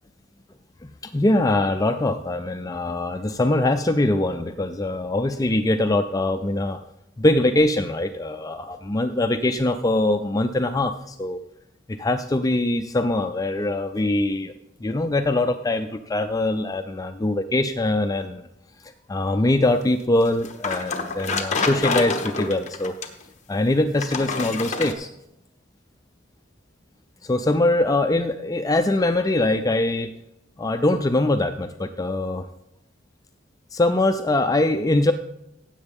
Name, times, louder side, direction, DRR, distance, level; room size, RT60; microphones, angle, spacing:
voice 1, 0.8-6.8 7.2-11.4 11.9-14.5 14.8-18.5 19.1-22.9 23.5-25.1 27.2-30.1 30.6-32.5 33.7-35.1, left 2 dB, 20° left, 7 dB, 0.4 m, -22 dB
sound 1, 20.2-23.2 24.0-24.9, left 3 dB, 35° left, 1.2 m, -27 dB
16.0 x 8.0 x 3.6 m, 0.84 s
head